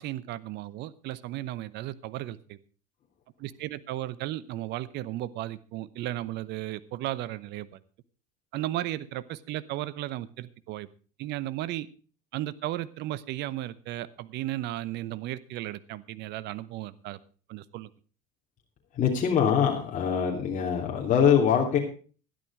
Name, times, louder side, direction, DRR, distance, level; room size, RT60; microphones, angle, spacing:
voice 1, 0.0-2.6 3.4-7.8 8.5-10.9 11.2-11.9 12.3-17.2 17.5-17.9, right 14 dB, 55° right, 18 dB, 0.9 m, -35 dB
voice 2, 18.9-21.8, left 7 dB, 40° left, -1 dB, 3.1 m, -23 dB
12.5 x 11.0 x 4.9 m, 0.39 s
hypercardioid pair, 90°, 21 cm